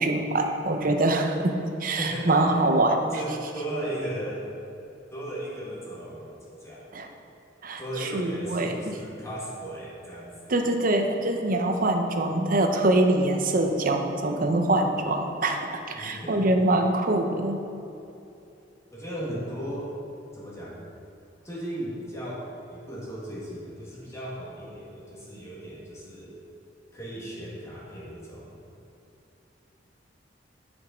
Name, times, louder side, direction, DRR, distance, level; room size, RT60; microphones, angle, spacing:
voice 1, 0.0-1.5 1.8-3.0 6.9-7.1 7.6-8.9 10.5-17.6, right 2 dB, 50° right, 4 dB, 0.8 m, -24 dB
voice 2, 2.0-2.6 3.1-4.5 5.1-6.9 7.8-10.6 15.9-16.5 18.9-19.9 20.3-20.9 21.4-26.3 26.9-28.6, right 1 dB, 15° left, -7 dB, 1.8 m, -36 dB
9.9 x 5.3 x 5.1 m, 2.7 s
head